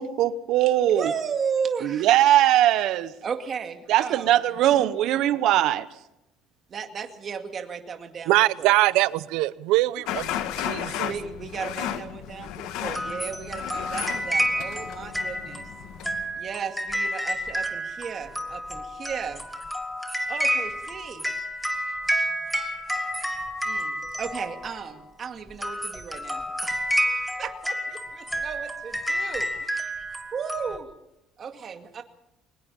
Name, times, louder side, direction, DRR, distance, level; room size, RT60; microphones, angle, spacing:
voice 1, 0.0-1.0 1.8-3.1 3.9-5.8, right 13 dB, 65° right, 1.0 m, -20 dB
voice 2, 0.9-2.1 3.2-4.4 6.7-8.7 11.0-15.7 16.3-19.4 20.3-21.3 22.2-22.6 23.6-29.9 30.3-30.9 31.4-32.0, right 6 dB, 35° right, 2.2 m, -35 dB
voice 3, 8.3-10.3 10.6-11.1, right 18 dB, 85° right, 0.7 m, -22 dB
sound 1, 10.1-16.3, left 10 dB, 80° left, 1.6 m, -34 dB
sound 2, 12.9-24.9 25.5-30.8, equal, ahead, 1.9 m, -30 dB
23.0 x 20.5 x 5.6 m
cardioid pair, 140°, 0 cm